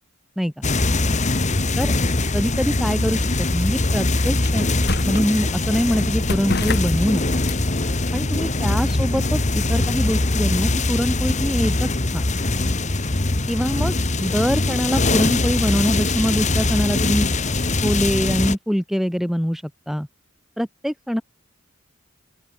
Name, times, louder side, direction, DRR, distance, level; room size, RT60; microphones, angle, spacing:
sound 1, 0.6-18.6, left 2 dB, 35° left, 1.5 m, -22 dB
voice 1, 2.3-4.7 5.0-7.2 8.1-12.2 13.5-17.3 17.8-20.1 20.6-21.2, equal, ahead, 4.6 m, -24 dB
sound 2, 4.2-10.2, left 2 dB, 50° left, 6.6 m, -34 dB
open air
head